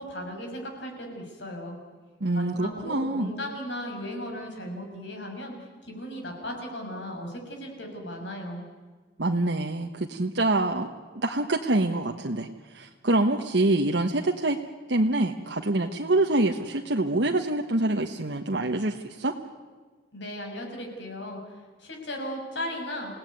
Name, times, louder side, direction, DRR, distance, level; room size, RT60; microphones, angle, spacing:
voice 1, 0.0-1.8 2.3-8.6 20.1-23.2, equal, 75° left, 2 dB, 6.2 m, -36 dB
voice 2, 2.2-3.3 9.2-10.9 11.1-14.6 14.9-19.3, right 2 dB, 70° right, 2 dB, 1.3 m, -25 dB
28.5 x 17.5 x 9.5 m, 1.5 s
head